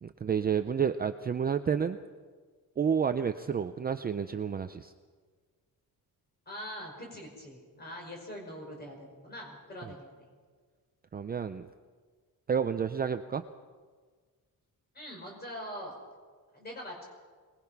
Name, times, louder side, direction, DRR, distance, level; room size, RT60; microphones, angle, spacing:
voice 1, 0.0-2.0 2.8-4.9 11.1-11.7 12.5-13.4, right 7 dB, 25° right, 8 dB, 0.5 m, -30 dB
voice 2, 6.5-10.3 14.9-15.9 16.5-17.1, equal, 25° left, 0 dB, 5.5 m, -43 dB
23.0 x 20.5 x 5.9 m, 1.5 s
wide cardioid pair, 175°, 36 cm